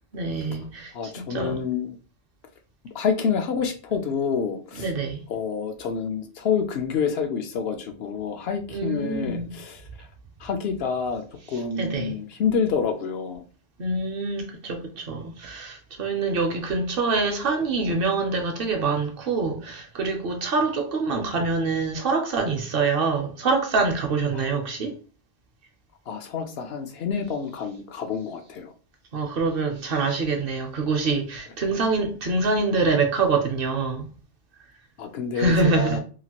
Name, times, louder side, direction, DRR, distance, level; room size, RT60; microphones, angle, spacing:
voice 1, 0.1-1.6 4.7-5.2 8.7-9.5 11.8-12.2 13.8-25.0 29.1-34.1 35.3-36.0, right 3 dB, 60° right, 0.8 m, -25 dB
voice 2, 0.9-2.0 2.9-4.9 5.3-10.1 10.4-13.4 24.3-24.5 26.1-28.7 35.0-36.0, left 6 dB, 70° left, 0.8 m, -28 dB
2.9 x 2.4 x 2.8 m
omnidirectional pair, 1.2 m